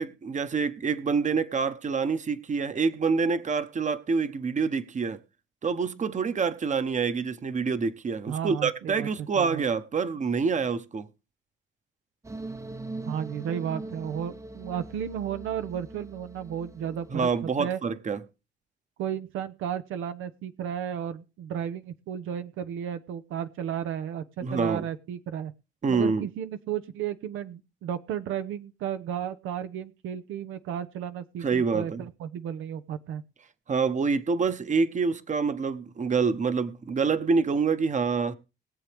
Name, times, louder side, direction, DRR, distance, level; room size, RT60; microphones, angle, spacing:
voice 1, 0.0-5.2 5.6-11.1 17.1-18.2 24.4-24.9 25.8-26.3 31.4-32.0 33.7-38.4, right 5 dB, 40° right, 1.0 m, -26 dB
voice 2, 8.3-9.6 13.0-17.3 17.6-17.8 19.0-25.5 25.9-33.2, right 9 dB, 90° right, 0.8 m, -33 dB
sound 1, 12.2-17.4, right 2 dB, 15° right, 0.6 m, -41 dB
21.0 x 7.5 x 3.5 m
cardioid pair, 90°, 20 cm